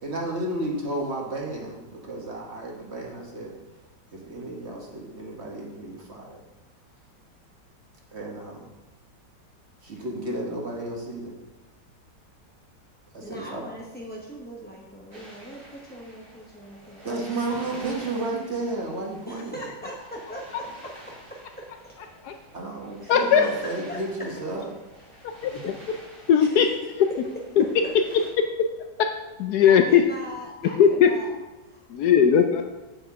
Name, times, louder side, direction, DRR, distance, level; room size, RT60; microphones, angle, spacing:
voice 1, 0.0-3.5 4.1-6.4 8.1-8.7 9.8-11.3 13.1-13.6 17.0-19.6 22.5-24.6, right 2 dB, 40° right, -1 dB, 1.3 m, -32 dB
voice 2, 13.2-17.1 19.3-21.9 23.0-23.1 23.4-24.0 25.1-25.3 26.4-26.7 29.7-31.3 31.6-31.8, equal, 15° left, -4 dB, 0.4 m, -40 dB
sound 1, 15.1-28.3, right 1 dB, 65° right, 3.4 m, -48 dB
voice 3, 23.1-23.5 25.2-25.8 26.3-27.1 27.6-27.7 29.0-29.1 29.4-30.0 30.8-31.1 31.9-32.7, left 8 dB, 70° left, 6 dB, 1.0 m, -19 dB
7.8 x 7.5 x 3.6 m, 1.1 s
omnidirectional pair, 1.9 m